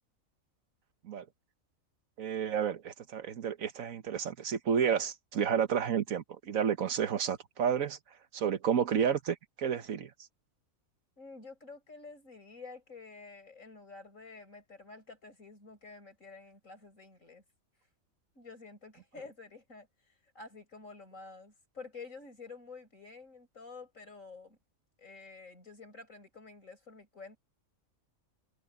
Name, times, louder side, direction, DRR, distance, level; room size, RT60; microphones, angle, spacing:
voice 1, 2.2-8.0 8.3-10.1, right 7 dB, 75° right, 1.5 m, -31 dB
voice 2, 11.2-17.4 18.3-19.9 20.4-24.6 25.0-27.4, left 4 dB, 65° left, 7.2 m, -50 dB
omnidirectional pair, 1.4 m